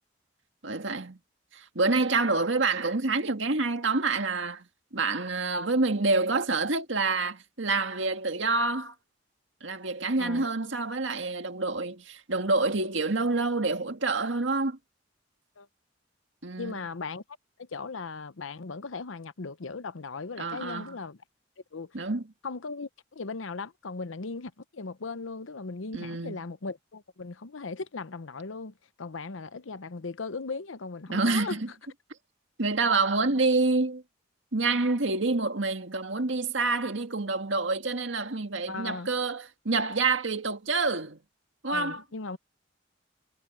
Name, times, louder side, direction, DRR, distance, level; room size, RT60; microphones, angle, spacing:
voice 1, 0.6-1.2 1.5-4.7 4.9-9.0 9.6-14.8 16.4-16.7 20.4-21.0 21.9-22.3 25.9-26.4 31.1-31.7 32.6-34.0 34.5-41.2 41.6-42.0, right 3 dB, 75° right, 1.9 m, -27 dB
voice 2, 10.2-10.5 15.6-15.7 16.6-17.2 17.6-21.2 21.7-21.9 22.4-31.6 38.7-39.1 41.7-42.4, left 4 dB, 90° left, 0.8 m, -38 dB
head